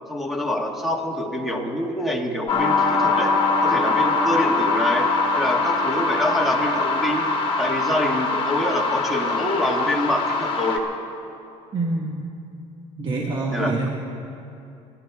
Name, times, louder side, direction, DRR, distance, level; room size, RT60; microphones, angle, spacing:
voice 1, 0.1-3.3 3.6-7.3 7.6-10.8 13.5-13.9, left 1 dB, ahead, 1 dB, 1.8 m, -25 dB
sound 1, 2.5-10.8, left 3 dB, 40° left, 1.6 m, -22 dB
voice 2, 11.7-12.2 13.0-13.9, right 3 dB, 35° right, -1 dB, 1.5 m, -26 dB
29.0 x 11.5 x 3.6 m, 2.7 s
cardioid pair, 120°, 14 cm